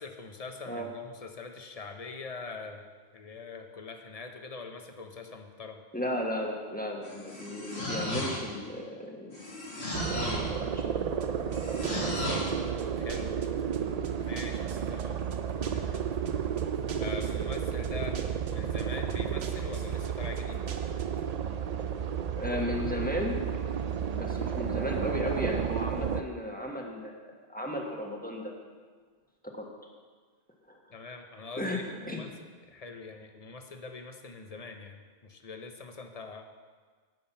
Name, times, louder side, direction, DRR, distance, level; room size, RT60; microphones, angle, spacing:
voice 1, 0.0-5.8 13.0-13.4 14.2-16.1 17.0-18.2 18.5-20.6 30.9-32.3 32.6-36.4, left 4 dB, 40° left, 5 dB, 0.9 m, -43 dB
voice 2, 5.9-9.4 10.1-11.5 22.3-23.4 24.1-28.5 29.5-29.7 30.7-30.8 31.6-31.8 32.1-32.2, left 1 dB, 10° left, 0 dB, 1.4 m, -35 dB
sound 1, 7.0-8.6 9.3-10.6 11.5-12.6, left 1 dB, 80° left, 2.6 m, -35 dB
sound 2, 9.9-26.2, right 8 dB, 50° right, 0.5 m, -32 dB
sound 3, 11.2-21.3, right 5 dB, 85° right, 1.1 m, -47 dB
11.0 x 7.7 x 5.7 m, 1.5 s
omnidirectional pair, 1.1 m